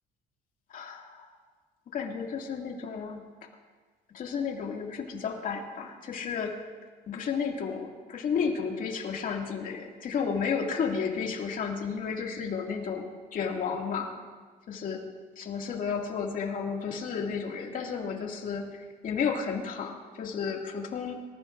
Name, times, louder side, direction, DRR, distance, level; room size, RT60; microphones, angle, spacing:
voice 1, 0.7-1.3 1.9-3.2 4.1-6.6 7.1-14.1 14.7-15.0 15.4-21.1, left 6 dB, 55° left, 1 dB, 2.4 m, -32 dB
26.0 x 14.5 x 2.6 m, 1.5 s
cardioid pair, 110°, 17 cm